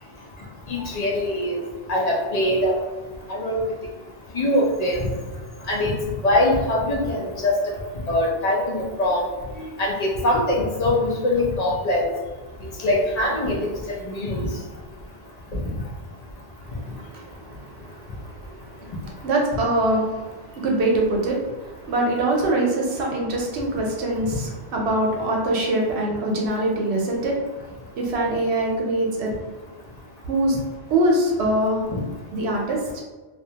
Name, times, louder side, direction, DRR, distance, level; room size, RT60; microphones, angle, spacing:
voice 1, 0.7-1.6 1.9-2.7 3.3-3.6 4.3-5.1 5.7-6.0 6.2-7.5 8.1-9.2 9.8-12.1 12.8-14.5 31.9-32.0, left 1 dB, 50° left, -3 dB, 0.5 m, -22 dB
voice 2, 16.7-18.9 19.2-27.4 28.0-29.3 30.3-30.6 30.9-31.8 32.3-33.0, right 1 dB, 85° right, -1 dB, 0.9 m, -24 dB
2.3 x 2.1 x 2.7 m, 1.3 s
omnidirectional pair, 1.1 m